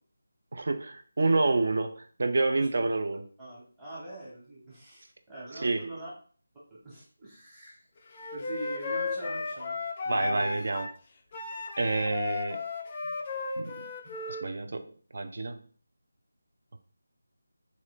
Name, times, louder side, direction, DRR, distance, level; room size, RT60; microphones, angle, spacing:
voice 1, 0.5-3.2 5.6-5.9 10.1-10.9 11.8-12.6 13.6-13.9 14.3-15.6, right 3 dB, 50° right, 6 dB, 0.4 m, -28 dB
voice 2, 3.4-6.1 6.7-7.8 8.3-9.8 10.0-10.5, right 1 dB, 10° right, -9 dB, 0.9 m, -43 dB
Wind instrument woodwind instrument, 8.2-10.9 11.3-14.4, left 3 dB, 25° left, 0.3 m, -34 dB
3.1 x 3.0 x 2.3 m, 0.43 s
figure-of-eight pair, 160°, 0 cm